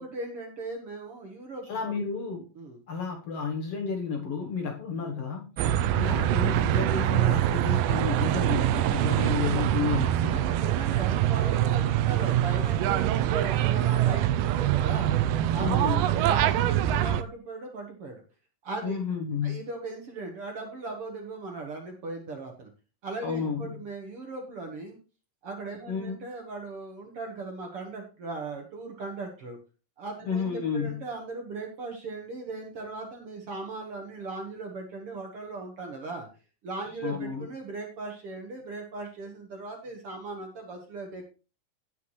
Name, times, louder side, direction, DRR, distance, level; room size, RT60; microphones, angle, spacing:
voice 1, 0.0-1.9 2.5-2.8 10.3-15.1 15.5-18.2 18.6-19.0 19.4-22.7 23.0-25.0 25.4-29.6 30.0-36.3 36.6-41.3, right 3 dB, 55° right, 2 dB, 1.8 m, -38 dB
voice 2, 1.7-2.4 2.9-5.5 5.9-10.4 15.6-16.0 18.8-19.6 23.2-23.8 25.9-26.2 30.2-31.0 37.0-37.5, left 5 dB, 60° left, 2 dB, 1.6 m, -31 dB
sound 1, 5.6-17.2, right 12 dB, 80° right, 2.2 m, -24 dB
17.5 x 5.8 x 3.1 m, 0.33 s
omnidirectional pair, 4.0 m